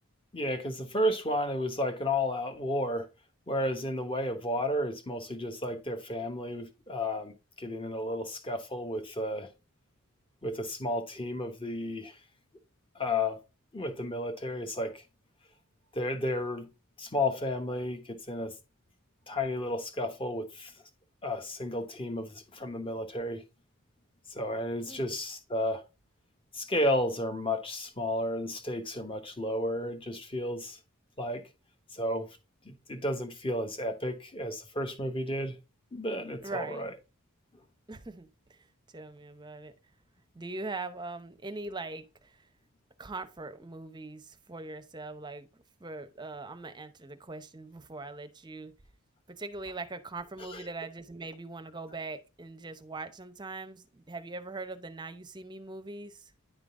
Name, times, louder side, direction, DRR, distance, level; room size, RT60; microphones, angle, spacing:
voice 1, 0.3-3.1 3.5-9.5 10.4-12.2 12.9-13.4 13.7-15.0 15.9-16.7 17.0-18.5 19.3-20.7 21.2-23.4 24.3-25.8 26.5-30.8 31.2-31.4 31.9-32.3 32.6-35.6 35.9-36.9 50.5-50.6, left 1 dB, 25° left, 1.1 m, -32 dB
voice 2, 36.4-36.9 37.9-39.7 40.3-42.5 43.0-48.7 49.3-56.3, right 3 dB, 20° right, 0.7 m, -41 dB
10.0 x 3.9 x 3.6 m
head